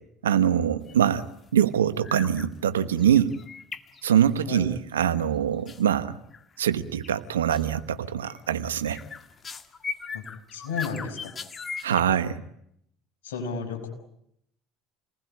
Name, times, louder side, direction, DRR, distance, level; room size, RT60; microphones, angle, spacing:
voice 1, 0.2-1.2 1.5-3.3 4.0-6.2 6.6-9.0 11.8-12.4, right 9 dB, 85° right, 12 dB, 1.2 m, -23 dB
sound 1, 0.9-1.2 1.5-1.8 2.0-2.5 2.8-4.5 5.7-5.8 6.3-6.7 7.0-7.2 7.5-7.8 8.2-12.0, left 5 dB, 30° left, 1.9 m, -39 dB
voice 2, 10.5-11.3 13.2-13.9, left 5 dB, 80° left, 2 dB, 5.6 m, -32 dB
28.5 x 20.0 x 10.0 m, 0.75 s
hypercardioid pair, 65°, 0 cm